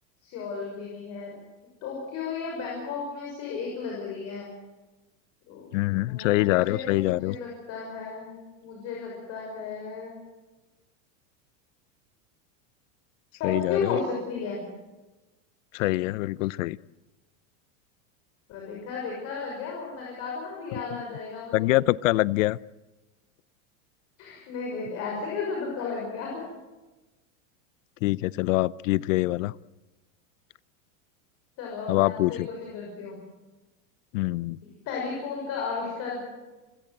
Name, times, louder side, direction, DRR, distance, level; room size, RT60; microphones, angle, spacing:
voice 1, 0.2-1.4 1.8-4.5 5.5-5.7 6.1-10.2 13.4-14.6 18.5-21.8 24.2-26.4 31.6-33.2 34.9-36.2, left 5 dB, 40° left, -1 dB, 6.2 m, -34 dB
voice 2, 5.7-7.4 13.4-14.0 15.7-16.8 20.9-21.0 21.5-22.6 28.0-29.5 31.9-32.5 34.1-34.6, left 18 dB, 70° left, 21 dB, 0.7 m, -24 dB
29.5 x 16.5 x 7.9 m, 1.1 s
supercardioid pair, 165°, 40 cm